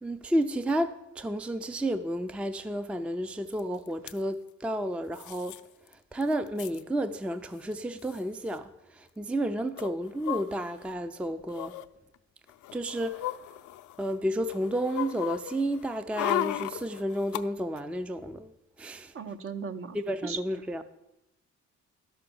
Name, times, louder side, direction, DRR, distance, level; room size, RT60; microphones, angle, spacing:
voice 1, 0.0-5.6 5.9-11.7 12.7-13.3 14.0-18.5 18.8-19.1 19.9-20.8, right 1 dB, 5° right, 0.4 m, -31 dB
sound 1, 3.6-3.7 3.9-4.2 5.1-5.6 5.9-6.0 6.2-6.8 7.7-7.8 8.0-8.2 9.8-10.9 11.5-11.9 12.5-14.1 14.5-17.4 17.8-17.9, left 14 dB, 75° left, 0.5 m, -35 dB
voice 2, 19.1-20.0 20.2-20.4, right 5 dB, 45° right, 0.8 m, -36 dB
12.0 x 5.8 x 6.9 m
cardioid pair, 90°, 30 cm